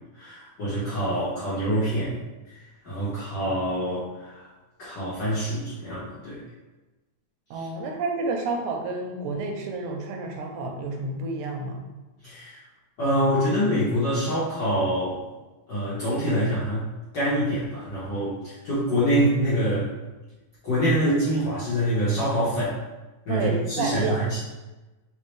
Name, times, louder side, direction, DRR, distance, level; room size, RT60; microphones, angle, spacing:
voice 1, 0.1-2.1 2.5-4.5 4.8-6.4 12.2-12.6 13.0-15.2 15.7-16.8 17.1-19.9 20.6-22.8 23.2-24.4, equal, 55° left, -11 dB, 1.3 m, -25 dB
voice 2, 7.5-11.8 23.3-24.3, right 3 dB, 90° right, 2 dB, 2.1 m, -30 dB
4.3 x 3.8 x 3.2 m, 1.1 s
omnidirectional pair, 3.4 m